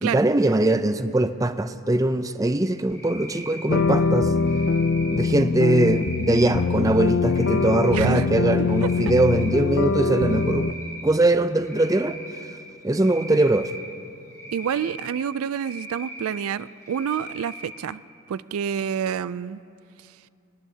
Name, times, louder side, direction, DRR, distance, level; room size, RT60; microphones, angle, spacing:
voice 1, 0.0-4.3 5.1-10.7 11.0-12.2 12.8-13.7, right 2 dB, 15° right, 0.4 m, -21 dB
Cricket, 2.9-3.8 4.3-5.2 5.7-6.5 7.2-8.1 8.5-9.5 9.8-11.0 11.6-12.4 12.9-13.8 14.3-15.1 15.5-16.4 16.8-17.6, right 1 dB, 15° left, 4.0 m, -40 dB
sound 1, 3.7-10.7, left 4 dB, 60° left, 0.4 m, -23 dB
voice 2, 7.9-8.3 8.8-8.9 14.5-18.0 18.3-19.6, right 8 dB, 90° right, 0.3 m, -28 dB
27.0 x 19.0 x 2.8 m
head